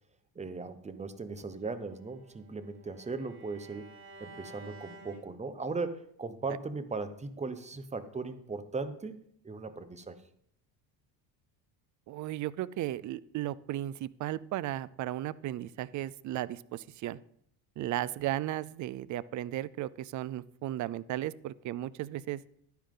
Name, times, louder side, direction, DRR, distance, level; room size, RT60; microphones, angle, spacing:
voice 1, 0.3-3.9 4.2-10.2, right 3 dB, 15° right, 11 dB, 1.1 m, -38 dB
Bowed string instrument, 1.7-5.9, right 3 dB, 70° right, 4.5 m, -52 dB
voice 2, 12.1-17.2 17.8-22.4, right 14 dB, 45° right, 20 dB, 0.5 m, -35 dB
11.5 x 10.0 x 3.8 m, 0.68 s
cardioid pair, 110°, 41 cm